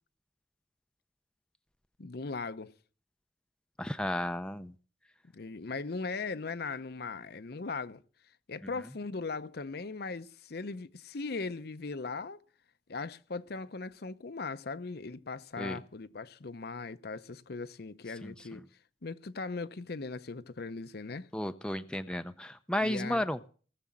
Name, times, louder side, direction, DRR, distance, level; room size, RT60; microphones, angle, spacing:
voice 1, 2.0-2.7 5.3-8.0 8.5-12.4 12.9-18.6 19.0-21.3 22.8-23.3, left 4 dB, 60° left, 0.7 m, -39 dB
voice 2, 3.8-4.7 15.6-15.8 18.2-18.6 21.3-23.4, left 1 dB, 5° left, 0.5 m, -33 dB
18.0 x 6.9 x 7.4 m
head